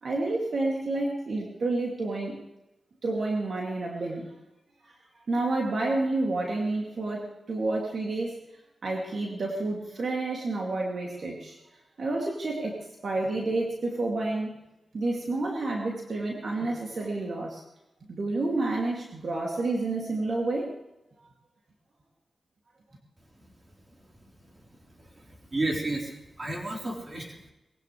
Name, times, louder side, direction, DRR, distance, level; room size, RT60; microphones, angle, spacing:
voice 1, 0.0-2.4 3.0-4.3 4.8-4.9 5.3-8.4 8.8-11.6 12.0-14.5 14.9-17.6 18.1-20.7, right 2 dB, 60° right, -1 dB, 2.7 m, -29 dB
voice 2, 25.0-27.5, right 2 dB, 30° right, -1 dB, 4.1 m, -32 dB
21.5 x 16.5 x 3.4 m, 0.93 s
wide cardioid pair, 95°, 0 cm